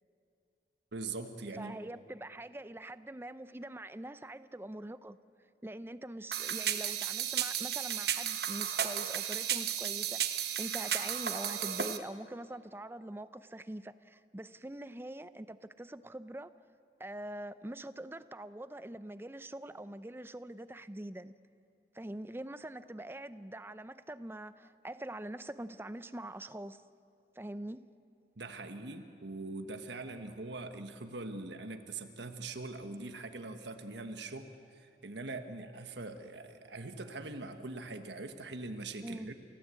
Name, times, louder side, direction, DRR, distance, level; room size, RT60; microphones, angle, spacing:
voice 1, 0.9-1.8 28.4-39.3, right 3 dB, 75° right, 7 dB, 1.3 m, -42 dB
voice 2, 1.6-5.2 5.6-16.5 17.0-21.3 21.9-26.8 27.4-27.9 39.0-39.3, right 1 dB, 15° right, 13 dB, 0.5 m, -44 dB
sound 1, 6.3-12.0, right 10 dB, 60° right, 1.1 m, -34 dB
29.5 x 16.0 x 8.4 m, 2.6 s
head